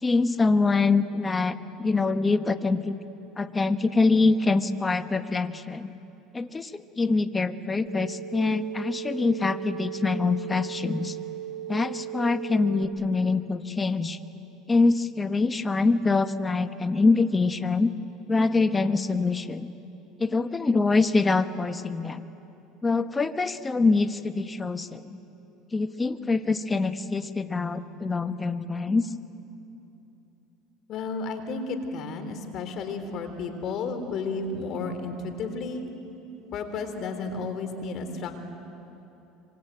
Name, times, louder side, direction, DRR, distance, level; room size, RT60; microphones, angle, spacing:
voice 1, 0.0-3.0 3.4-5.9 6.3-11.2 11.7-14.2 14.7-17.9 18.3-19.7 20.2-22.2 22.8-25.2 25.7-29.1, left 3 dB, 20° left, 10 dB, 1.2 m, -24 dB
sound 1, 7.9-12.9, right 11 dB, 40° right, 3.7 m, -37 dB
voice 2, 30.9-35.8 36.5-38.4, left 4 dB, 55° left, 7 dB, 3.6 m, -32 dB
25.5 x 24.5 x 9.2 m, 3.0 s
supercardioid pair, 90°, 0 cm